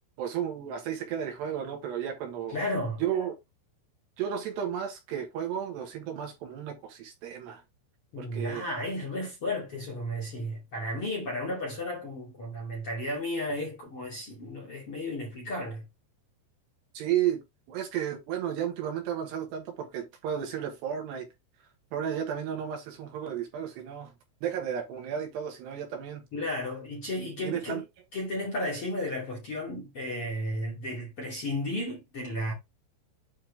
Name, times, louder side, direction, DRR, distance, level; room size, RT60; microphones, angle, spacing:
voice 1, 0.2-2.6 3.0-3.3 4.2-7.6 8.2-8.6 16.9-21.3 21.9-24.1 24.4-26.2 27.4-27.8, right 9 dB, 65° right, 3.3 m, -33 dB
voice 2, 2.5-3.0 8.1-15.8 26.3-27.8 28.1-32.5, left 1 dB, 35° left, 2.6 m, -33 dB
9.2 x 4.3 x 3.4 m
omnidirectional pair, 5.6 m